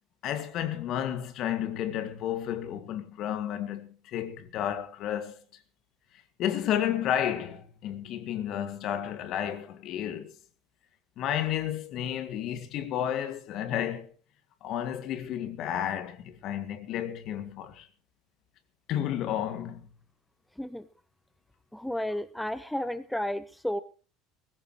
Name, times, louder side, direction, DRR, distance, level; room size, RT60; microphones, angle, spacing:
voice 1, 0.2-5.4 6.4-10.3 11.2-14.1 14.6-17.9 18.9-19.9, left 10 dB, 55° left, 2.1 m, -32 dB
voice 2, 21.7-23.8, left 1 dB, 5° left, 1.0 m, -32 dB
20.5 x 16.5 x 3.1 m
hypercardioid pair, 70°, 0 cm